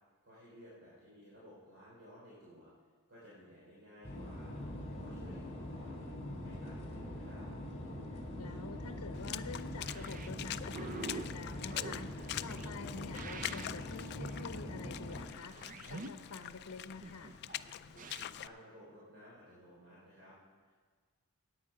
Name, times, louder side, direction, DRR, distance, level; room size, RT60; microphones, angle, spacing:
voice 1, 0.2-2.7 3.1-6.1 6.4-7.5 17.9-20.3 20.6-20.8, equal, 55° right, -7 dB, 3.5 m, -56 dB
sound 1, 4.0-15.3, left 1 dB, 30° left, 2.7 m, -43 dB
voice 2, 8.1-17.3, left 4 dB, 85° left, 8 dB, 0.7 m, -48 dB
Water / Splash splatter, 9.1-18.5, left 12 dB, 50° left, 0.3 m, -44 dB
sound 2, 9.8-18.2, right 3 dB, 35° right, 0.5 m, -48 dB
17.0 x 8.7 x 4.9 m, 1.5 s
head